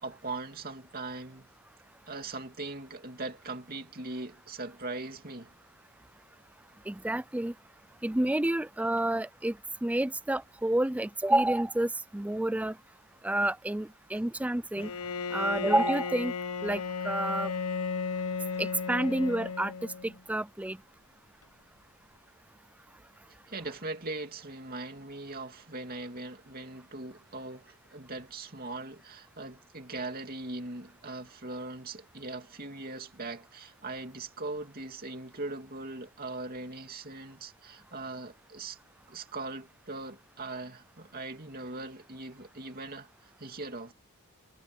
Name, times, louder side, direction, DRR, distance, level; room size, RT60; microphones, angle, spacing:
voice 1, 0.0-1.5 2.1-5.5 15.3-15.4 23.5-38.8 39.1-43.9, right 2 dB, 40° right, 2.7 m, -40 dB
voice 2, 6.9-7.5 8.0-9.5 9.8-12.7 13.2-14.9 15.3-16.3 16.6-17.5 18.6-19.7 20.0-20.8, right 1 dB, 5° right, 0.4 m, -29 dB
Bowed string instrument, 14.8-20.2, left 5 dB, 90° left, 1.2 m, -34 dB
head